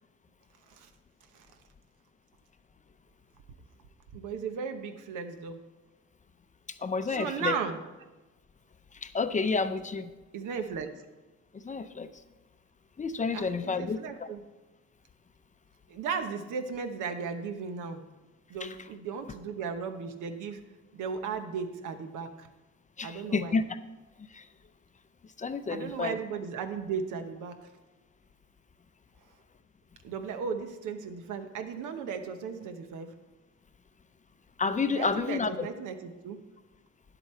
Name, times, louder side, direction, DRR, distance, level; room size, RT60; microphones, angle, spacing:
voice 1, 4.1-5.6 7.1-7.9 10.3-10.9 13.3-14.4 15.9-18.0 18.5-20.6 20.9-22.5 23.0-23.6 25.7-27.6 30.0-33.1 34.9-36.4, right 6 dB, 85° right, 8 dB, 1.0 m, -36 dB
voice 2, 6.8-7.6 9.0-10.1 11.6-12.1 13.0-14.3 18.6-18.7 23.0-23.6 24.3-24.4 25.4-26.2 34.6-35.7, left 4 dB, 25° left, 11 dB, 0.5 m, -30 dB
10.0 x 8.0 x 4.4 m, 1.1 s
cardioid pair, 90°, 30 cm